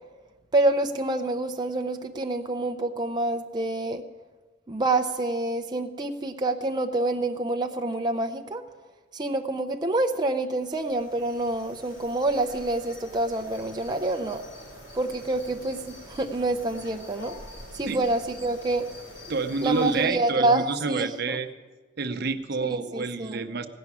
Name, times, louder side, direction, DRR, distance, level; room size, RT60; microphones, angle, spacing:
voice 1, 0.5-4.0 4.7-8.6 9.1-14.4 14.9-17.3 17.7-18.9 19.6-21.4 22.6-23.4, right 2 dB, 25° right, 4 dB, 0.5 m, -27 dB
sound 1, 10.6-20.1, left 1 dB, 75° left, 3.8 m, -45 dB
voice 2, 19.3-21.5 22.0-23.7, right 4 dB, 60° right, 9 dB, 0.8 m, -28 dB
17.0 x 6.0 x 9.7 m, 1.3 s
head